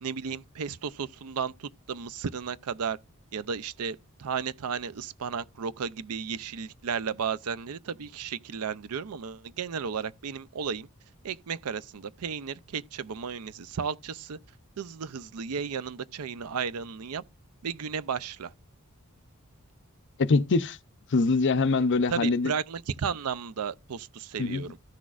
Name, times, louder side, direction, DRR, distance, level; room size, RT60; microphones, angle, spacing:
voice 1, 0.0-3.0 3.3-10.9 11.2-14.4 14.8-17.2 17.6-18.5 22.1-24.8, right 6 dB, 80° right, 0.5 m, -34 dB
voice 2, 20.2-20.8 21.1-22.5 24.4-24.6, left 3 dB, 55° left, 0.6 m, -23 dB
14.5 x 6.1 x 2.5 m
head